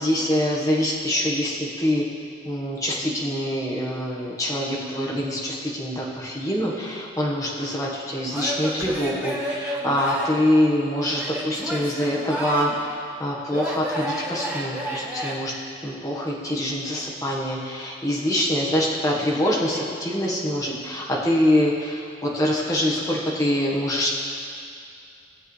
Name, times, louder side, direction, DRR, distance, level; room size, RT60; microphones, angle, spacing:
voice 1, 0.0-2.0 2.4-12.9 13.2-15.5 15.8-24.1, left 1 dB, 20° left, -4 dB, 1.4 m, -24 dB
Male speech man speaking / Yell / Laughter, 8.3-10.5 11.1-12.9 13.5-15.4, equal, 10° right, 1.3 m, -31 dB
18.5 x 7.7 x 3.3 m, 2.4 s
head